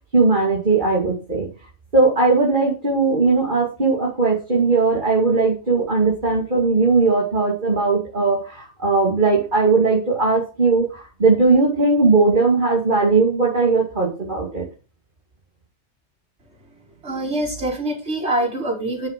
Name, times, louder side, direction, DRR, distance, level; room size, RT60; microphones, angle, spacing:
voice 1, 0.1-1.5 1.9-14.6, right 3 dB, 40° right, -3 dB, 3.1 m, -18 dB
voice 2, 17.0-19.1, right 1 dB, 65° right, -4 dB, 5.1 m, -24 dB
10.0 x 7.3 x 6.0 m, 0.34 s
omnidirectional pair, 1.2 m